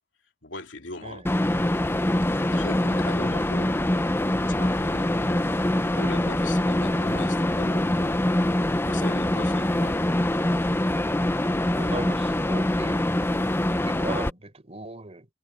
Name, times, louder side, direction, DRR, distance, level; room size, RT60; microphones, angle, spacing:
voice 1, 0.4-1.3 2.3-3.8 4.3-5.5 5.9-8.2 8.8-10.0, left 2 dB, 75° left, 2.9 m, -39 dB
sound 1, 1.2-14.3, left 1 dB, 10° left, 0.7 m, -24 dB
voice 2, 11.8-13.4 13.8-15.3, right 2 dB, 35° right, 3.9 m, -38 dB
head